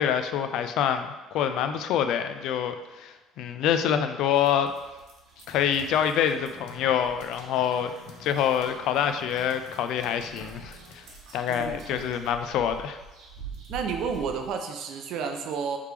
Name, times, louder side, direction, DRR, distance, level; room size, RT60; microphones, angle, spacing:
voice 1, 0.0-4.7 5.5-7.9 8.2-11.0 11.3-13.0, left 9 dB, 65° left, 9 dB, 0.3 m, -26 dB
sound 1, 4.3-14.5, right 5 dB, 75° right, 1.0 m, -47 dB
sound 2, 5.5-10.9, left 3 dB, 90° left, 0.7 m, -48 dB
voice 2, 11.5-11.8 13.7-15.8, right 6 dB, 60° right, 5 dB, 0.5 m, -31 dB
4.8 x 3.3 x 3.3 m, 1.1 s
cardioid pair, 160°, 0 cm